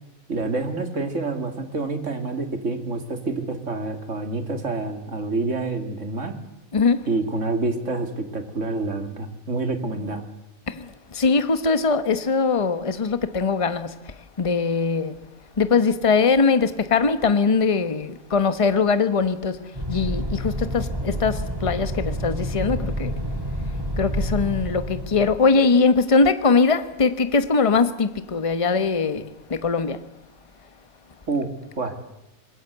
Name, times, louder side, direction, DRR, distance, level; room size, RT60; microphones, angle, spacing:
voice 1, 0.3-6.3 7.1-10.2 31.3-31.5 31.8-32.0, right 3 dB, 60° right, 2.8 m, -27 dB
voice 2, 6.7-7.0 10.7-15.1 15.6-23.1 24.0-30.0, left 4 dB, 25° left, 1.1 m, -21 dB
sound 1, 19.7-25.4, equal, 15° right, 2.4 m, -28 dB
25.0 x 21.0 x 8.1 m
omnidirectional pair, 1.4 m